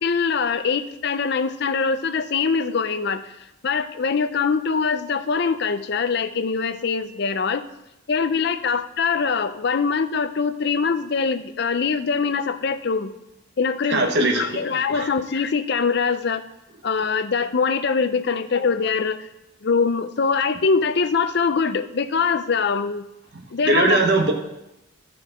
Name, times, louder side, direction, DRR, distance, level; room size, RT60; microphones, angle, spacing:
voice 1, 0.0-3.2 3.6-7.7 8.1-13.1 13.6-16.4 16.8-19.2 19.6-23.1 23.5-24.0, left 5 dB, 55° left, 11 dB, 0.5 m, -23 dB
voice 2, 13.9-14.6 14.9-15.1 23.7-24.3, right 2 dB, 55° right, 3 dB, 1.0 m, -20 dB
12.5 x 4.6 x 5.0 m, 0.89 s
head